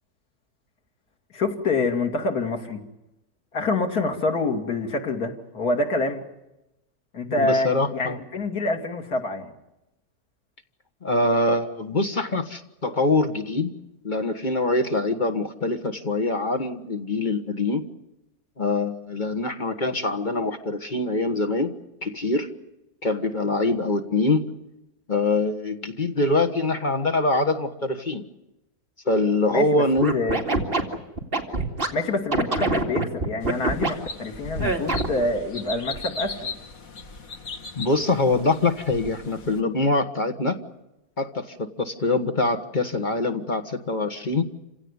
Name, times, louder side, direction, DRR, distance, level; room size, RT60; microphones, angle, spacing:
voice 1, 1.3-2.8 3.5-6.2 7.1-9.5 29.5-29.8 30.1-30.4 31.9-36.5, left 2 dB, 80° left, 3 dB, 3.0 m, -26 dB
voice 2, 7.4-8.2 11.0-13.7 14.0-17.9 18.6-21.7 22.0-22.5 23.0-24.5 25.1-28.3 29.0-30.1 37.7-40.6 41.2-44.4, left 2 dB, 35° left, 7 dB, 1.5 m, -24 dB
Scratching (performance technique), 30.0-31.9 32.3-33.9 34.6-35.2, right 2 dB, 35° right, 2.5 m, -24 dB
sound 1, 33.4-39.6, left 3 dB, 65° left, 2.2 m, -37 dB
27.5 x 17.0 x 9.7 m, 0.92 s
omnidirectional pair, 1.6 m